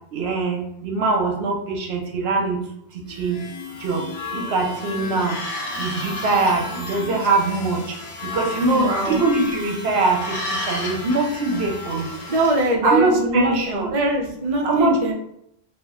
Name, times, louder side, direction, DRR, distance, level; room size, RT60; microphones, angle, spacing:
voice 1, 0.1-2.6 3.2-3.4 3.8-4.0 4.3-5.4 5.8-7.8 8.3-12.1 12.8-13.9 14.6-15.1, right 3 dB, 75° right, 2 dB, 0.9 m, -22 dB
sound 1, 3.1-12.7, left 3 dB, 40° left, 0.4 m, -35 dB
sound 2, 5.2-9.7 10.0-12.5, left 1 dB, 80° left, 1.0 m, -34 dB
voice 2, 8.7-9.2 12.3-15.1, right 1 dB, 50° right, 2 dB, 0.4 m, -22 dB
2.4 x 2.1 x 3.5 m, 0.75 s
omnidirectional pair, 1.1 m